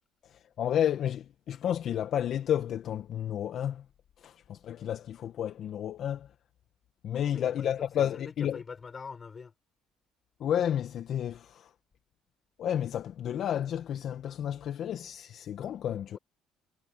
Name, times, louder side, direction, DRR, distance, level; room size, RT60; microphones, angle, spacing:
voice 1, 0.2-3.8 4.2-6.3 7.0-8.6 10.4-11.7 12.6-16.2, left 10 dB, 55° left, 1.6 m, -31 dB
voice 2, 7.1-9.5 16.1-16.2, left 5 dB, 30° left, 7.2 m, -44 dB
supercardioid pair, 85°, 0 cm